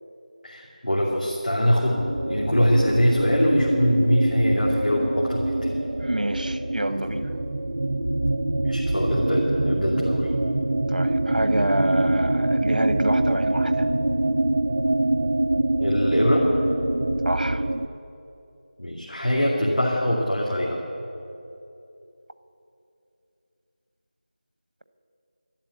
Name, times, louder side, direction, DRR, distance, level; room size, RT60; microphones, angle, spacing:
voice 1, 0.4-5.8 8.6-10.3 15.8-16.5 18.8-20.8, equal, 85° left, -4 dB, 2.6 m, -23 dB
sound 1, 2.0-17.9, right 1 dB, 30° right, 0.3 m, -24 dB
voice 2, 6.0-7.3 10.9-13.9 17.2-17.6, right 1 dB, 85° right, 11 dB, 1.0 m, -27 dB
12.0 x 11.0 x 8.2 m, 2.8 s
figure-of-eight pair, 175°, 5 cm